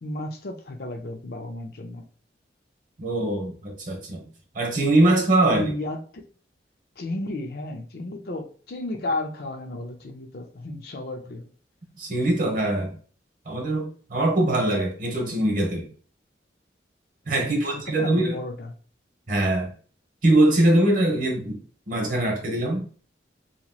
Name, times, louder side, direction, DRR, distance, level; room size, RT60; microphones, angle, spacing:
voice 1, 0.0-2.0 5.4-6.3 7.0-11.5 17.4-18.7, left 2 dB, 55° left, 0.5 m, -33 dB
voice 2, 3.0-4.3 4.5-5.6 12.0-13.0 13.5-15.9 17.3-18.4 19.3-19.7 20.2-21.6 21.9-22.9, right 1 dB, 45° right, 1.0 m, -22 dB
2.9 x 2.8 x 2.3 m
head